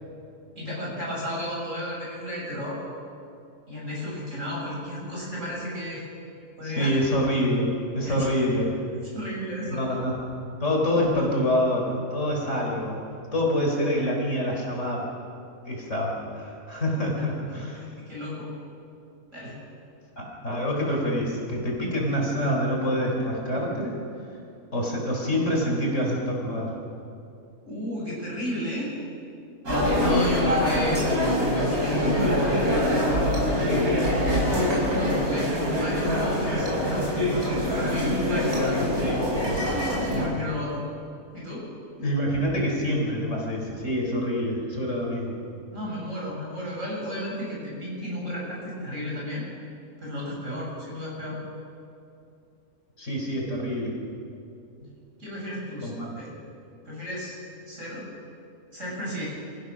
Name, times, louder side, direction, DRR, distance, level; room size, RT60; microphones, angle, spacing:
voice 1, 0.6-2.8 3.7-6.0 6.6-7.0 8.0-8.3 9.0-9.8 17.5-18.5 19.3-19.6 27.6-29.0 29.9-31.1 31.5-32.7 33.5-33.9 34.7-37.1 37.5-38.9 39.9-40.8 41.3-41.7 45.7-49.5 50.0-51.4 55.2-56.3 56.9-57.4 57.7-58.1 58.7-59.2, left 1 dB, 55° right, -4 dB, 7.1 m, -33 dB
voice 2, 6.6-8.8 9.7-10.2 10.6-13.0 13.3-15.0 15.6-17.9 20.2-23.9 24.7-26.7 30.1-30.3 42.0-45.4 53.0-53.9 54.8-54.9 55.8-56.1, equal, 55° left, -1 dB, 4.5 m, -26 dB
sound 1, 29.7-40.3, equal, 85° right, 5.7 m, -24 dB
27.5 x 15.5 x 6.2 m, 2.6 s
omnidirectional pair, 1.5 m